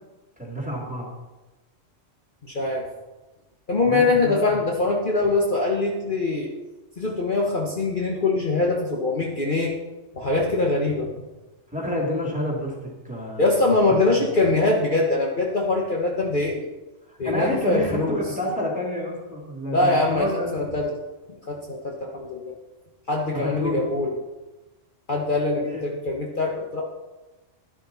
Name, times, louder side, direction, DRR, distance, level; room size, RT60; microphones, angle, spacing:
voice 1, 0.4-1.1 3.8-4.6 11.7-13.8 17.1-20.6 23.3-23.8 25.6-25.8, left 1 dB, 5° right, -2 dB, 2.7 m, -29 dB
voice 2, 2.4-2.9 3.7-6.5 7.0-9.8 10.1-11.1 13.4-16.7 17.2-18.2 19.7-20.3 20.5-20.9 21.3-22.6 23.1-24.1 25.1-26.8, left 2 dB, 40° left, -1 dB, 1.4 m, -23 dB
11.5 x 11.5 x 4.1 m, 1.1 s
omnidirectional pair, 1.3 m